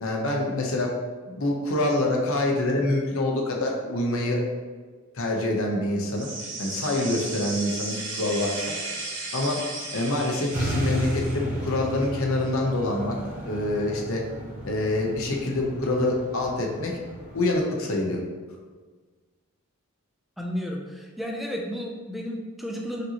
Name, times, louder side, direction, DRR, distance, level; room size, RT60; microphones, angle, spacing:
voice 1, 0.0-0.9 1.3-4.4 5.1-6.3 6.6-8.6 9.3-9.6 9.9-13.2 13.4-14.2 14.6-16.9 17.3-18.2, left 2 dB, 65° left, 0 dB, 0.8 m, -26 dB
sound 1, 6.1-11.4, right 2 dB, 60° right, 1.2 m, -35 dB
sound 2, 10.5-17.6, right 1 dB, 40° right, 0.8 m, -34 dB
voice 2, 20.4-23.0, equal, ahead, 0 dB, 0.4 m, -32 dB
5.1 x 2.9 x 2.8 m, 1.5 s
head